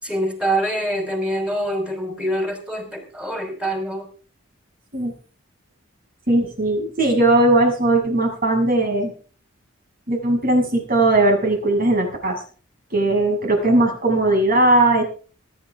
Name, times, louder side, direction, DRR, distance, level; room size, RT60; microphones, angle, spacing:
voice 1, 0.0-4.1, right 1 dB, 5° right, 4 dB, 5.0 m, -25 dB
voice 2, 6.3-9.1 10.1-12.4 12.9-15.0, right 2 dB, 45° right, 2 dB, 6.9 m, -18 dB
23.5 x 11.5 x 3.7 m, 0.39 s
head